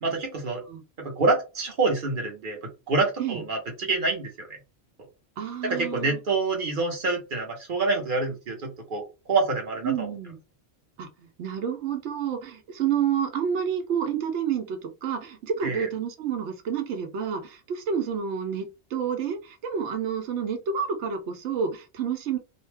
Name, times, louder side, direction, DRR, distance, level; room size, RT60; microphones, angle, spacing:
voice 1, 0.0-0.6 1.0-4.6 5.6-10.1 15.6-15.9, right 3 dB, 55° right, 0.9 m, -27 dB
voice 2, 5.4-6.2 9.8-10.4 11.0-22.4, right 7 dB, 85° right, 0.9 m, -29 dB
2.5 x 2.1 x 3.2 m
omnidirectional pair, 1.1 m